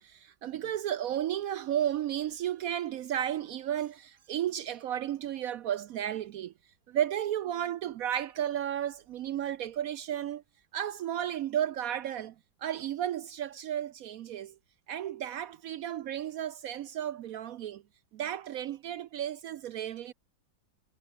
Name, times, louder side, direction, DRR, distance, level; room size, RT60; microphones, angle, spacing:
voice 1, 0.0-6.5 6.9-10.4 10.7-12.3 12.6-14.6 14.9-17.8 18.1-20.1, right 11 dB, 70° right, 0.9 m, -33 dB
omnidirectional pair, 1.8 m